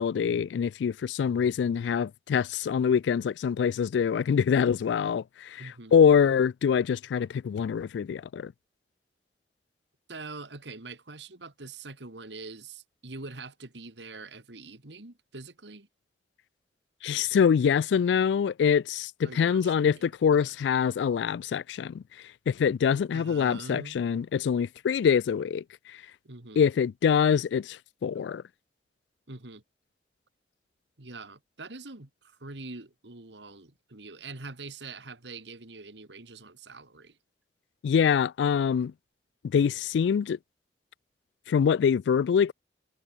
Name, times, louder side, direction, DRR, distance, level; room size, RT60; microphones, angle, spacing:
voice 1, 0.0-8.5 17.0-22.0 22.5-26.0 26.6-28.4 37.8-38.9 39.4-40.4 41.5-42.5, left 7 dB, 80° left, 0.3 m, -25 dB
voice 2, 5.6-5.9 10.1-15.9 19.2-20.1 20.4-20.5 23.1-24.1 26.2-26.6 29.3-29.6 31.0-37.2, right 3 dB, 80° right, 2.2 m, -44 dB
head